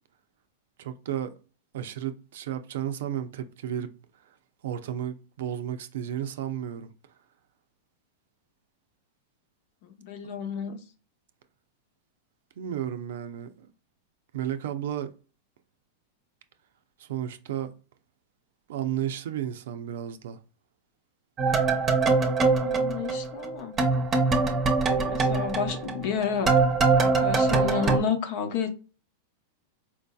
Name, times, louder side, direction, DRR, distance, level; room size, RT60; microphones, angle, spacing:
voice 1, 0.8-1.3 1.7-3.9 4.6-6.9 12.6-13.7 14.3-15.1 17.0-17.7 18.7-20.4, right 10 dB, 70° right, 0.5 m, -33 dB
voice 2, 9.8-10.8 22.4-23.8 25.0-26.6 27.0-28.7, left 6 dB, 60° left, 0.8 m, -31 dB
sound 1, 21.4-23.5 23.8-28.0, right 4 dB, 25° right, 0.8 m, -23 dB
4.4 x 2.7 x 2.3 m
hypercardioid pair, 110°, 0 cm